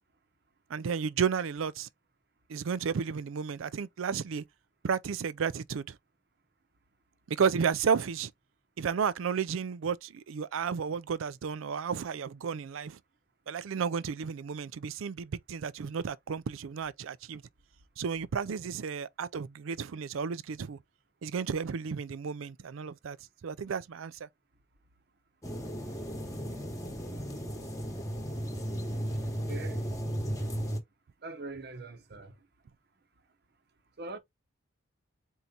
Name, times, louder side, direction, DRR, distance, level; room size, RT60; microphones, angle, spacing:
voice 1, 0.7-1.9 2.5-4.4 4.8-6.0 7.3-8.3 8.8-13.0 13.5-17.4 18.0-20.8 21.2-23.2 23.4-24.3, right 6 dB, 80° right, 0.4 m, -32 dB
sound 1, 25.4-30.8, equal, 15° left, 1.0 m, -35 dB
voice 2, 29.5-29.8 31.2-32.4 34.0-34.2, right 3 dB, 50° right, 0.8 m, -42 dB
4.6 x 2.8 x 3.8 m
head